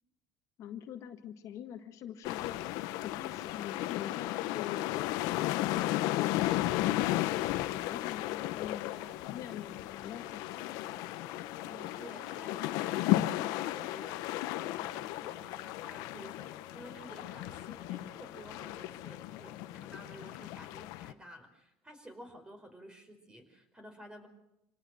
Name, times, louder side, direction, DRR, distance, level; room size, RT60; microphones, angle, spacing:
voice 1, 0.6-2.6 3.0-6.3 6.7-11.1, left 9 dB, 55° left, 6 dB, 1.6 m, -45 dB
sound 1, 2.2-21.1, left 16 dB, 75° left, 1.0 m, -34 dB
sound 2, 4.9-19.9, left 5 dB, 20° left, 1.9 m, -56 dB
voice 2, 11.6-24.3, equal, 10° right, 7 dB, 5.0 m, -52 dB
26.5 x 18.5 x 6.4 m, 0.87 s
cardioid pair, 115°, 7 cm